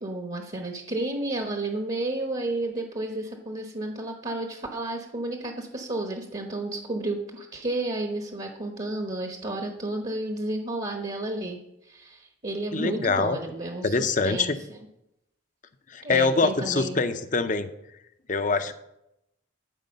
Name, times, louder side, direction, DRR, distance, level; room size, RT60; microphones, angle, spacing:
voice 1, 0.0-11.6 11.8-14.5 16.0-17.0, right 2 dB, 35° right, 3 dB, 1.0 m, -32 dB
voice 2, 12.7-13.4 13.8-14.6 15.9-17.7 18.3-18.7, left 3 dB, 40° left, 10 dB, 0.6 m, -24 dB
13.0 x 4.8 x 6.6 m, 0.85 s
head